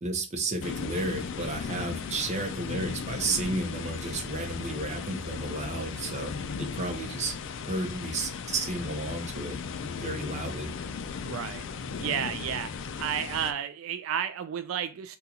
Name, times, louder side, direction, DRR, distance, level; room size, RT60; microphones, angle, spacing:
voice 1, 0.0-7.3 7.7-9.6 9.8-10.7, right 2 dB, 35° right, 0.7 m, -32 dB
sound 1, 0.6-13.5, left 5 dB, 65° left, 0.4 m, -36 dB
voice 2, 11.2-11.6 12.0-15.2, right 9 dB, 80° right, 0.3 m, -32 dB
3.8 x 2.3 x 2.8 m
head